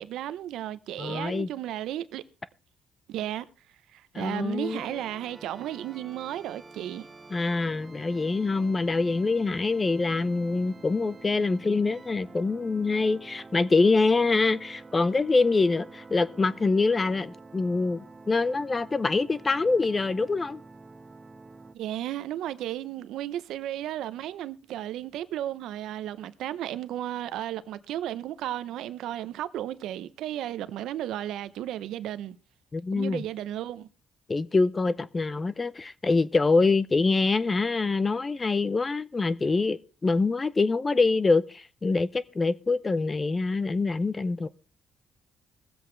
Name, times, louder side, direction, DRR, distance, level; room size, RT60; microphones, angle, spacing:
voice 1, 0.0-2.2 3.1-3.5 3.9-7.1 21.7-32.4 32.9-33.9, right 12 dB, 85° right, 0.7 m, -34 dB
voice 2, 1.0-1.5 4.1-4.8 7.3-20.6 32.7-33.2 34.3-44.5, left 3 dB, 25° left, 0.5 m, -25 dB
sound 1, 4.6-21.7, right 3 dB, 25° right, 1.0 m, -48 dB
22.0 x 7.9 x 3.2 m
cardioid pair, 90°, 0 cm